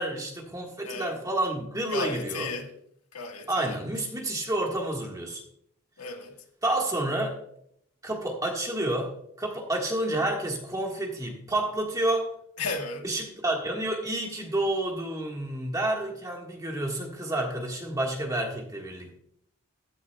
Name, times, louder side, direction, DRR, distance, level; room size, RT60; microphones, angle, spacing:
voice 1, 0.0-2.5 3.5-5.4 6.6-7.4 8.0-12.3 13.0-19.2, right 1 dB, 15° right, 1.6 m, -29 dB
voice 2, 0.8-1.2 1.9-2.7 3.1-3.8 6.0-6.3 12.6-13.0, left 4 dB, 85° left, 1.6 m, -34 dB
14.0 x 9.7 x 2.3 m
head